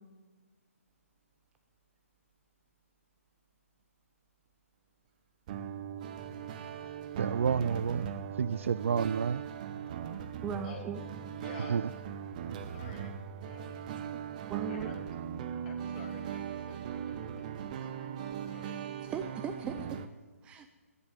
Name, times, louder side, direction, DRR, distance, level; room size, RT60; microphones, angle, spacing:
sound 1, 5.5-20.1, right 8 dB, 30° right, 0.9 m, -39 dB
voice 1, 7.2-8.1 8.4-9.4 11.7-11.8, right 6 dB, 60° right, 19 dB, 0.4 m, -29 dB
voice 2, 10.4-11.0 14.5-14.9 19.0-19.7 20.4-20.7, right 7 dB, 15° right, 7 dB, 0.6 m, -37 dB
voice 3, 11.4-11.8 12.6-13.1 13.5-13.8 14.7-14.9 15.6-17.5 17.8-18.7, left 6 dB, 35° left, 1 dB, 2.9 m, -51 dB
11.5 x 10.5 x 9.2 m, 1.4 s
figure-of-eight pair, 145°, 8 cm